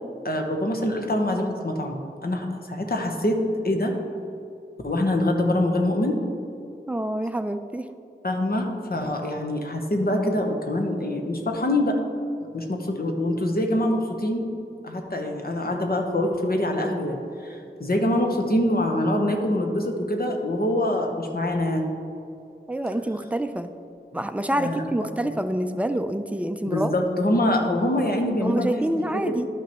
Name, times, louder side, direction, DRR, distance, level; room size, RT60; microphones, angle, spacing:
voice 1, 0.2-3.4 3.6-3.9 4.8-6.2 8.2-12.0 12.5-14.5 14.8-21.9 24.6-24.8 26.7-28.7 29.1-29.3, left 1 dB, 50° left, 2 dB, 1.0 m, -24 dB
voice 2, 6.9-7.9 22.7-23.7 24.1-26.9 28.4-29.5, right 1 dB, 5° right, 8 dB, 0.4 m, -27 dB
11.5 x 5.9 x 3.0 m, 2.7 s
wide cardioid pair, 45°, 19 cm